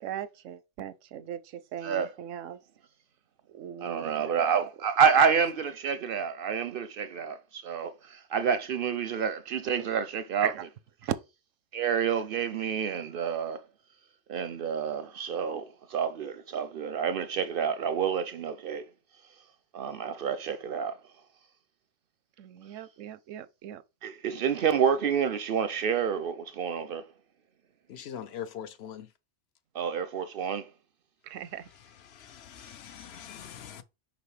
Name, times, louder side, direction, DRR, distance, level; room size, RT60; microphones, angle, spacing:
voice 1, 0.0-2.6 3.5-4.6 5.1-5.4 10.4-10.6 22.4-23.8 31.2-31.7, right 10 dB, 85° right, 1.0 m, -39 dB
voice 2, 3.8-10.5 11.7-13.6 14.3-18.8 19.7-21.0 24.0-27.0 29.7-30.7, right 7 dB, 60° right, 0.6 m, -28 dB
voice 3, 27.9-29.1 32.0-33.8, left 9 dB, 65° left, 0.8 m, -42 dB
5.8 x 5.3 x 3.2 m
omnidirectional pair, 1.3 m